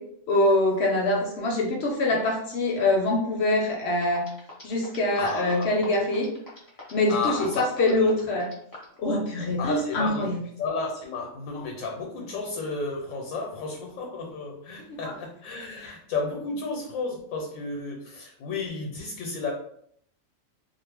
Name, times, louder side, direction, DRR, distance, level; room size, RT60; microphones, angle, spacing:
voice 1, 0.3-4.2 4.6-6.3 6.9-8.5 9.0-10.4 14.9-15.1 15.8-15.9, left 2 dB, 65° left, 0 dB, 0.7 m, -24 dB
sound 1, 4.0-9.0, left 2 dB, 25° left, 0.5 m, -44 dB
voice 2, 5.2-6.0 7.1-8.0 9.6-10.2 10.6-19.5, left 4 dB, 85° left, 1 dB, 1.0 m, -32 dB
2.4 x 2.1 x 3.2 m, 0.67 s
omnidirectional pair, 1.4 m